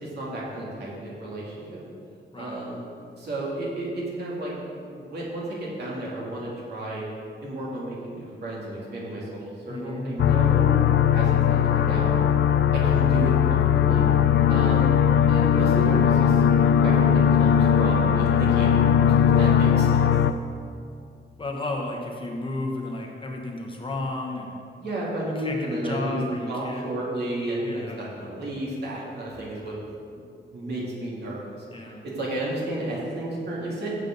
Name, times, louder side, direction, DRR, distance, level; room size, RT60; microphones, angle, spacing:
voice 1, 0.0-1.8 2.4-2.8 3.2-4.5 4.8-7.0 7.4-10.8 11.1-12.1 12.7-14.1 14.5-15.0 15.3-16.4 16.8-20.0 24.8-26.2 26.5-29.8 30.1-31.6 32.0-33.9, right 1 dB, 60° right, -5 dB, 2.8 m, -32 dB
voice 2, 9.7-10.1 21.4-24.5 25.3-26.8 27.6-28.1 31.7-32.0, left 2 dB, 25° left, 0 dB, 1.1 m, -33 dB
sound 1, 10.2-20.3, left 9 dB, 75° left, 0.5 m, -19 dB
15.5 x 7.2 x 4.0 m, 2.4 s
wide cardioid pair, 175°, 19 cm